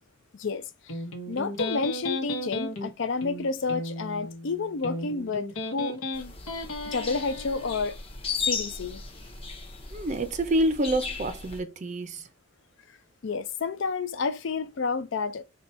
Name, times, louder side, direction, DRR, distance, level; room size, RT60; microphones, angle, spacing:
voice 1, 0.4-1.0 1.3-6.0 6.9-7.9 8.4-9.0 13.2-15.4, left 4 dB, 60° left, 0.5 m, -30 dB
Electric guitar, 0.9-7.9, left 1 dB, 80° left, 1.0 m, -35 dB
sound 1, 6.1-11.6, left 5 dB, 25° left, 0.7 m, -36 dB
voice 2, 9.9-12.3, right 1 dB, 35° right, 0.5 m, -27 dB
4.0 x 2.3 x 4.2 m
head